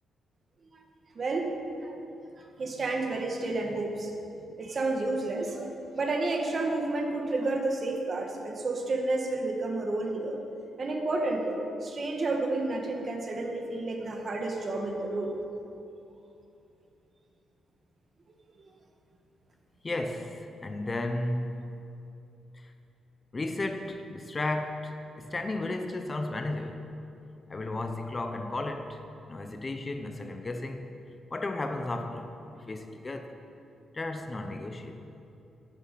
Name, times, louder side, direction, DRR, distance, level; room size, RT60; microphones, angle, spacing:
voice 1, 1.2-1.5 1.8-1.9 2.4-4.1 4.6-10.4 10.8-15.4 18.6-18.7, right 2 dB, 35° right, 2 dB, 1.9 m, -30 dB
voice 2, 19.8-21.7 22.5-22.7 23.3-26.9 27.5-29.0 29.3-30.9 31.3-32.4 32.7-33.4 33.9-35.1, left 2 dB, 25° left, 6 dB, 0.9 m, -34 dB
11.5 x 9.7 x 8.4 m, 2.7 s
cardioid pair, 130°, 0 cm